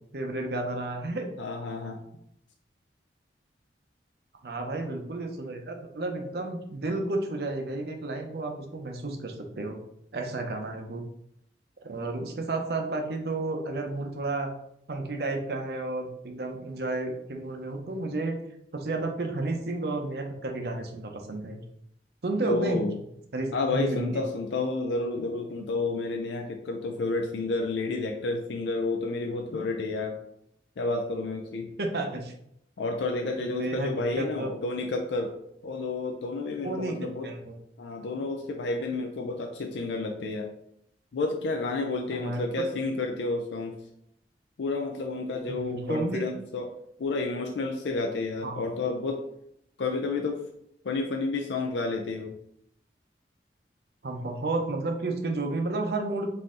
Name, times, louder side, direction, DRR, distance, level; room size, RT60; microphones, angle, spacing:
voice 1, 0.1-1.3 4.4-9.8 10.1-11.0 11.8-14.5 14.9-18.4 18.7-21.6 22.2-22.9 23.3-24.2 31.8-32.3 33.4-33.9 34.2-34.5 36.6-37.5 42.1-42.4 45.4-46.2 48.4-48.6 54.0-56.3, right 2 dB, 60° right, 4 dB, 0.6 m, -32 dB
voice 2, 1.4-2.0 22.4-22.9 23.5-30.2 30.8-31.7 32.8-35.3 35.6-37.3 37.8-40.5 41.1-43.7 44.6-46.7 47.0-49.2 49.8-50.4 50.8-52.4, left 3 dB, 90° left, 2 dB, 0.5 m, -30 dB
4.2 x 2.7 x 3.6 m, 0.74 s
head